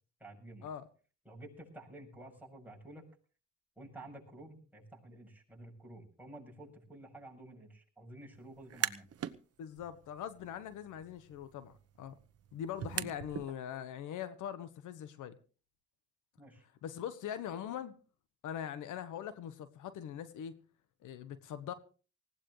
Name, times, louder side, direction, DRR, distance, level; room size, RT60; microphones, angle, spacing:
voice 1, 0.2-0.7 1.3-3.0 3.8-9.1 16.4-16.6, right 1 dB, 5° right, 7.1 m, -51 dB
sound 1, 8.5-9.4 9.8-13.5, right 9 dB, 50° right, 1.1 m, -41 dB
voice 2, 9.6-12.2 12.5-15.4 16.8-17.9 18.4-20.6 21.0-21.7, left 9 dB, 85° left, 1.3 m, -42 dB
19.5 x 17.0 x 3.3 m
cardioid pair, 90°, 30 cm